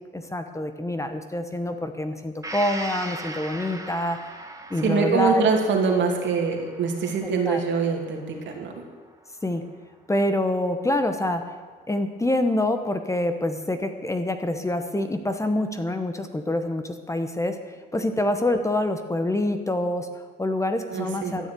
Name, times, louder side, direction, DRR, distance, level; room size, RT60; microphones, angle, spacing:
voice 1, 0.1-4.2 4.7-5.4 7.5-7.6 9.4-9.6 10.1-11.4 11.9-17.6 17.9-21.5, left 1 dB, 15° left, 7 dB, 1.0 m, -26 dB
Gong, 2.4-10.1 10.5-10.6, right 2 dB, 15° right, 1.4 m, -40 dB
voice 2, 4.8-8.8 20.9-21.3, right 5 dB, 70° right, 1 dB, 2.5 m, -24 dB
13.0 x 7.1 x 8.5 m, 1.4 s
cardioid pair, 90°, 20 cm